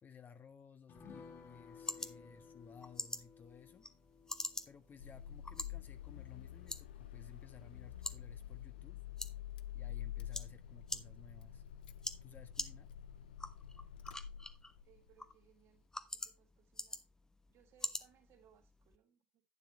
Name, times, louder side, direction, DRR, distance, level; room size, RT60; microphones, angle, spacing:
voice 1, 0.0-3.8 4.7-9.0 9.7-11.6 12.2-12.9, left 6 dB, 35° left, 1.5 m, -58 dB
sound 1, 0.9-7.7 8.0-8.1 8.4-8.6, left 5 dB, 55° left, 3.6 m, -58 dB
sound 2, 1.0-19.0, left 2 dB, 10° left, 1.1 m, -48 dB
Car / Engine starting, 5.0-15.0, left 11 dB, 85° left, 0.5 m, -48 dB
voice 2, 14.8-15.9 16.1-17.0 17.5-19.4, right 9 dB, 60° right, 3.4 m, -68 dB
11.0 x 9.3 x 2.9 m
hypercardioid pair, 70°, 5 cm